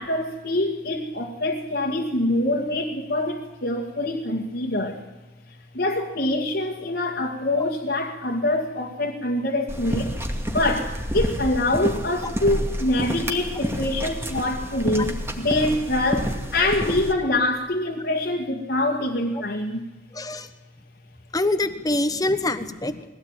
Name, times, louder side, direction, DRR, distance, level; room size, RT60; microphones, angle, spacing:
voice 1, 0.0-5.0 5.5-10.1 10.5-19.8, left 1 dB, 60° left, -2 dB, 2.1 m, -25 dB
sound 1, 9.7-17.1, equal, 15° right, 2.3 m, -29 dB
voice 2, 20.1-20.5 21.3-23.1, left 2 dB, 20° left, 10 dB, 1.2 m, -25 dB
21.5 x 17.0 x 9.1 m, 1.1 s
head